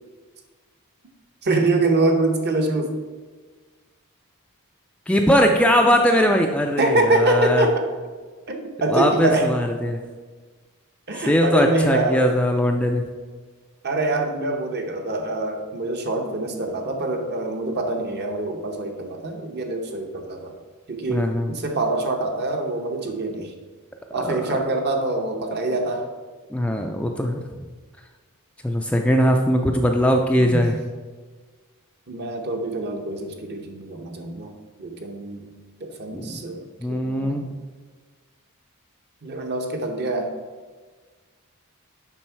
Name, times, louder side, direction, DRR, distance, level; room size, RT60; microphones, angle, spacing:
voice 1, 1.4-3.0 6.8-7.8 8.5-9.5 11.1-12.3 13.8-20.6 20.9-23.5 24.1-26.1 30.4-30.7 32.1-34.5 34.8-35.5 35.8-36.6 36.9-37.5 39.2-40.4, right 2 dB, 50° right, 3 dB, 0.9 m, -25 dB
voice 2, 5.1-7.7 8.9-10.0 11.3-13.0 21.1-21.5 24.1-24.4 26.5-27.4 28.6-30.8 36.1-36.3 36.8-37.5, equal, 5° left, 3 dB, 0.4 m, -20 dB
7.3 x 5.4 x 4.5 m, 1.4 s
head